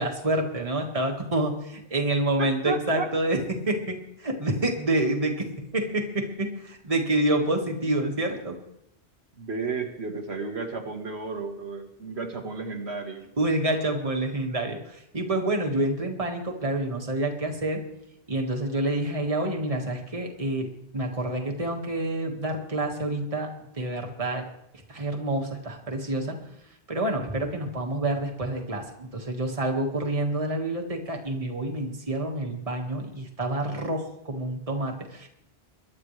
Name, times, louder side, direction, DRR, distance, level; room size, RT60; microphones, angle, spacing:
voice 1, 0.0-8.6 13.4-17.8 18.3-20.7 20.9-24.5 24.9-26.4 26.9-35.3, right 1 dB, 30° right, 2 dB, 1.8 m, -28 dB
voice 2, 2.4-3.1 9.4-13.2, right 4 dB, 75° right, 3 dB, 1.8 m, -33 dB
22.5 x 11.5 x 3.3 m, 0.81 s
omnidirectional pair, 1.1 m